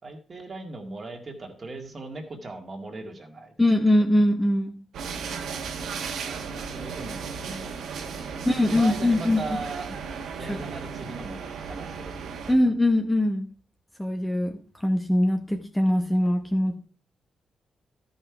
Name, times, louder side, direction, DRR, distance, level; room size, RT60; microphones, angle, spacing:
voice 1, 0.0-3.6 6.0-9.9 10.4-12.3, right 2 dB, 35° right, 3 dB, 1.9 m, -39 dB
voice 2, 3.6-4.7 8.5-9.4 10.5-10.6 12.5-13.5 14.0-16.7, left 1 dB, 10° left, 4 dB, 0.9 m, -22 dB
sound 1, 4.9-12.5, right 6 dB, 90° right, 1.2 m, -35 dB
12.5 x 5.6 x 4.7 m, 0.42 s
cardioid pair, 115°, 0 cm